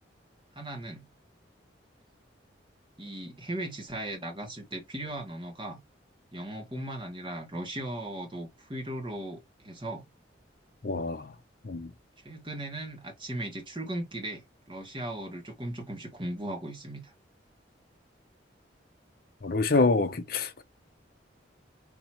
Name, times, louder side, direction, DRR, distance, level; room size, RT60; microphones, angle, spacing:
voice 1, 0.5-1.1 3.0-5.8 6.3-10.1 12.2-17.1, right 1 dB, 25° right, 1.5 m, -37 dB
voice 2, 10.8-11.3 11.6-11.9 19.4-20.6, left 3 dB, 50° left, 0.6 m, -26 dB
4.0 x 2.8 x 4.3 m
head